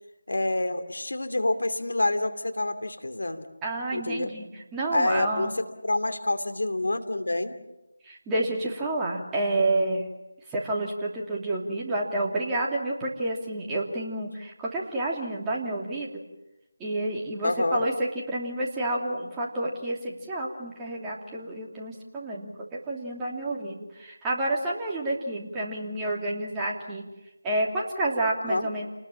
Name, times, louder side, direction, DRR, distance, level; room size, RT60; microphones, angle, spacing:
voice 1, 0.3-3.5 3.9-4.3 4.9-5.5 5.8-7.6 17.4-17.9 28.4-28.7, left 2 dB, 75° left, 8 dB, 2.7 m, -27 dB
voice 2, 3.6-4.5 4.7-5.5 8.0-10.1 10.5-16.2 16.8-22.5 22.9-27.0 27.4-28.9, right 2 dB, 10° right, -3 dB, 2.9 m, -29 dB
28.5 x 20.0 x 7.3 m, 0.99 s
figure-of-eight pair, 165°, 0 cm